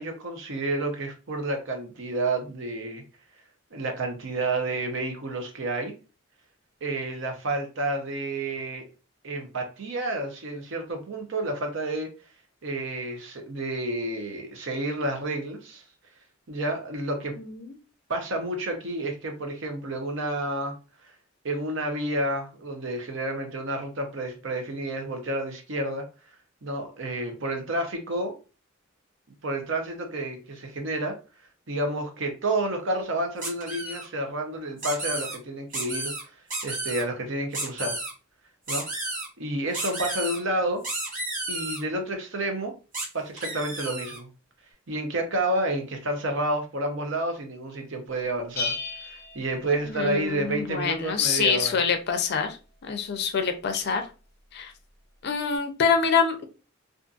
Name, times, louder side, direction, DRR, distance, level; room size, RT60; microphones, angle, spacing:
voice 1, 0.0-3.0 3.7-5.9 6.8-8.8 9.2-12.1 12.6-15.8 16.5-17.4 18.1-20.8 21.4-26.1 26.6-28.4 29.4-31.2 31.7-36.1 36.6-38.0 38.7-38.9 39.4-40.8 41.5-42.7 43.1-44.3 44.9-48.7 49.0-51.8, right 2 dB, 60° right, 0.7 m, -30 dB
voice 2, 17.3-17.8 49.8-52.6 52.8-54.1 54.5-54.7 55.2-56.4, left 6 dB, 50° left, 0.4 m, -26 dB
sound 1, 33.4-34.1 34.8-35.4 35.7-36.2 36.5-37.0 37.5-38.1 38.7-39.3 39.7-40.4 40.8-41.8 42.9-43.1 43.4-44.2, right 2 dB, 40° right, 0.9 m, -32 dB
Bell, 48.6-50.4, left 4 dB, 15° left, 1.0 m, -34 dB
2.6 x 2.5 x 2.4 m
head